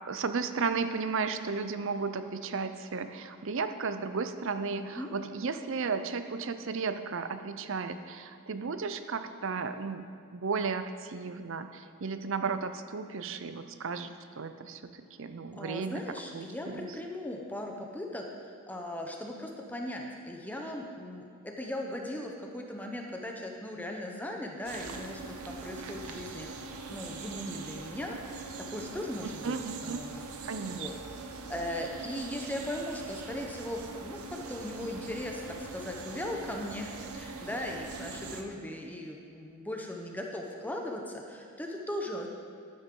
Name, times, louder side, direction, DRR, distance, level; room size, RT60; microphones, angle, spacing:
voice 1, 0.1-10.1 10.3-16.0 16.3-16.9 29.2-30.0 30.4-30.9, right 5 dB, 60° right, 10 dB, 0.6 m, -34 dB
voice 2, 4.8-5.1 15.5-28.2 28.6-29.6 29.8-30.2 30.7-30.9 31.5-42.3, left 1 dB, 5° left, 1 dB, 0.8 m, -38 dB
sound 1, 24.6-38.4, right 4 dB, 80° right, 0.9 m, -42 dB
12.0 x 10.5 x 3.8 m, 2.4 s
head